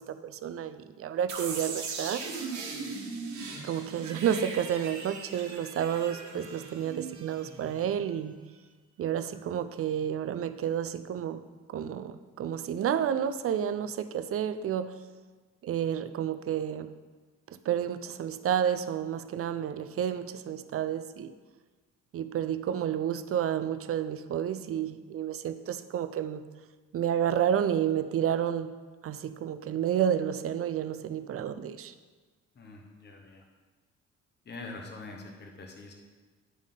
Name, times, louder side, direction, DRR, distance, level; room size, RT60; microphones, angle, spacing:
voice 1, 0.0-2.2 3.6-8.4 9.0-11.4 11.7-14.9 15.6-16.9 17.5-21.3 22.1-26.4 26.9-28.7 29.0-31.9, right 9 dB, 50° right, 11 dB, 0.5 m, -30 dB
sound 1, 1.3-8.1, right 4 dB, 70° right, 1.4 m, -39 dB
voice 2, 32.5-33.4 34.5-35.9, left 3 dB, 35° left, 2 dB, 1.0 m, -44 dB
10.5 x 3.6 x 3.8 m, 1.4 s
cardioid pair, 90°, 30 cm